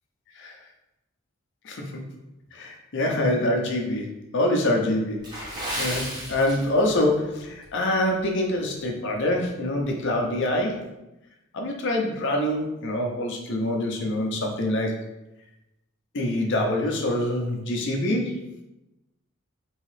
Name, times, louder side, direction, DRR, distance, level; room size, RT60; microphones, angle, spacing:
voice 1, 1.6-2.0 2.5-4.1 4.3-10.8 11.5-15.0 16.1-18.4, left 1 dB, 60° left, 1 dB, 0.6 m, -25 dB
Water / Splash splatter, 5.2-7.1 7.4-7.6 8.2-8.4 8.9-9.0, equal, 20° right, 0.8 m, -33 dB
3.1 x 2.8 x 3.2 m, 0.93 s
head